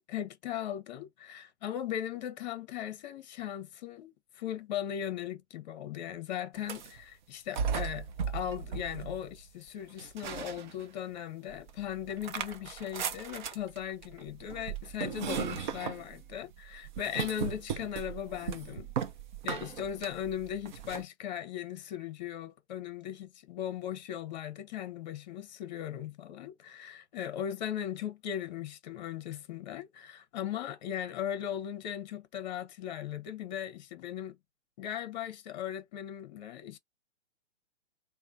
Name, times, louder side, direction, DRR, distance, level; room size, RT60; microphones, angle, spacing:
voice 1, 0.0-18.9 19.4-34.4 34.8-36.8, left 10 dB, 40° left, 0.8 m, -38 dB
sound 1, 6.6-7.0 7.5-9.5 10.0-11.1 11.5-21.0, right 7 dB, 40° right, 0.6 m, -37 dB
3.2 x 2.1 x 3.8 m
figure-of-eight pair, 120°, 35 cm